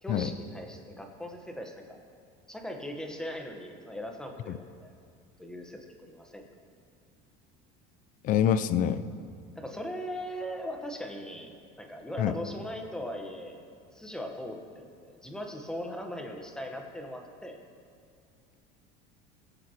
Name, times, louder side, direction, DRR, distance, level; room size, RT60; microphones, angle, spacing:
voice 1, 0.0-2.0 2.5-4.9 5.4-6.4 9.6-13.6 13.9-17.6, equal, 5° left, 3 dB, 1.1 m, -39 dB
voice 2, 8.2-9.0 12.2-12.3, left 9 dB, 45° left, 14 dB, 0.5 m, -25 dB
21.0 x 7.8 x 2.9 m, 2.3 s
cardioid pair, 135°, 19 cm